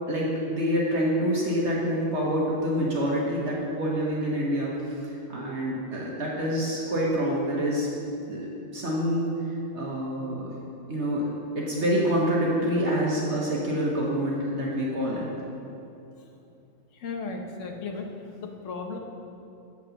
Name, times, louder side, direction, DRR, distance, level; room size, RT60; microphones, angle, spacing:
voice 1, 0.1-7.9 8.3-8.5 8.7-9.3 9.7-10.6 10.9-11.2 11.5-15.3, equal, 60° right, -4 dB, 1.4 m, -27 dB
voice 2, 16.9-18.1 18.4-19.0, left 4 dB, 70° left, 3 dB, 1.2 m, -35 dB
8.2 x 5.4 x 6.3 m, 2.7 s
omnidirectional pair, 1.3 m